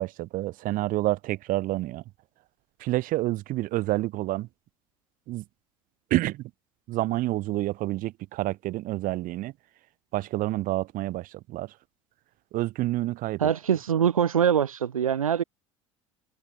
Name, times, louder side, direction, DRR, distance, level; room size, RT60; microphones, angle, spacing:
voice 1, 0.0-2.0 2.8-4.5 5.3-5.4 6.1-6.5 6.9-9.5 10.1-11.7 12.5-13.4, right 17 dB, 55° right, 1.7 m, -28 dB
voice 2, 13.4-15.4, right 8 dB, 85° right, 0.9 m, -23 dB
hypercardioid pair, 70°, 17 cm